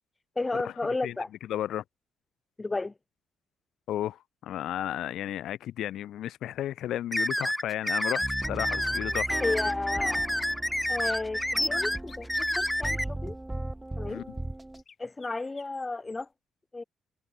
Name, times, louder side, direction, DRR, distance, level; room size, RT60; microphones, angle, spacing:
voice 1, 0.4-1.3 2.6-2.9 9.4-10.3 10.9-13.4 14.0-14.2 15.0-16.3 16.7-16.8, left 3 dB, 20° left, 0.8 m, -32 dB
voice 2, 1.5-1.8 3.9-9.3 14.1-14.2, left 12 dB, 75° left, 1.8 m, -33 dB
sound 1, 7.1-13.0, left 1 dB, 5° left, 0.4 m, -29 dB
sound 2, 8.2-14.8, right 1 dB, 10° right, 1.2 m, -38 dB
sound 3, 11.1-12.8 14.2-14.3 14.7-16.2, left 6 dB, 45° left, 5.3 m, -55 dB
cardioid pair, 90°, 0 cm